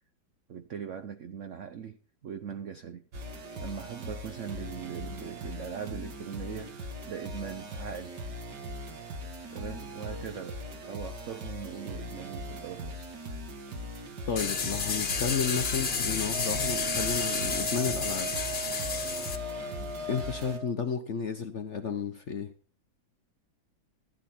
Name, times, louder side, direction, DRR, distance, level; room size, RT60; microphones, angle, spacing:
voice 1, 0.5-3.0 3.6-8.2 9.5-10.6 10.9-13.1 19.7-19.9, right 7 dB, 80° right, 0.6 m, -40 dB
sound 1, 3.1-20.6, equal, 55° right, 2.2 m, -40 dB
voice 2, 14.3-18.3 20.1-22.5, left 6 dB, 55° left, 0.8 m, -32 dB
sound 2, 14.4-19.4, left 5 dB, 35° left, 1.3 m, -31 dB
Wind instrument woodwind instrument, 16.3-20.7, right 3 dB, 35° right, 1.2 m, -38 dB
15.0 x 10.0 x 4.3 m
omnidirectional pair, 2.2 m